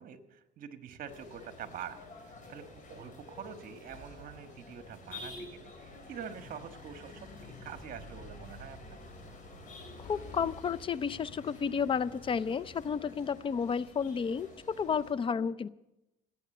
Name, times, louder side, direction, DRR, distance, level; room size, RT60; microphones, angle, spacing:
voice 1, 0.0-9.0, right 8 dB, 55° right, 9 dB, 1.5 m, -46 dB
sound 1, 1.1-15.1, left 2 dB, 50° left, 5.2 m, -49 dB
sound 2, 10.0-10.6, left 4 dB, 85° left, 3.8 m, -50 dB
voice 2, 10.0-14.5 14.8-15.7, left 6 dB, 30° left, 19 dB, 0.5 m, -32 dB
17.5 x 8.5 x 7.8 m, 0.92 s
cardioid pair, 110°, 17 cm